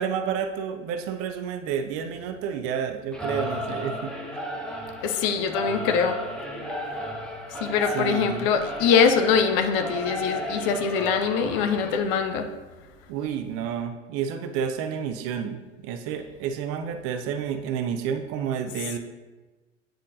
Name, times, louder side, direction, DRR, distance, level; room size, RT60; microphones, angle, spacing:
voice 1, 0.0-4.1 7.9-8.5 13.1-19.0, right 7 dB, 40° right, 7 dB, 0.5 m, -30 dB
Singing / Musical instrument, 3.1-12.0, equal, 5° left, 1.1 m, -34 dB
voice 2, 5.0-6.2 7.6-12.5, left 6 dB, 45° left, 7 dB, 0.7 m, -23 dB
8.7 x 5.1 x 2.7 m, 1.2 s
figure-of-eight pair, 85°, 37 cm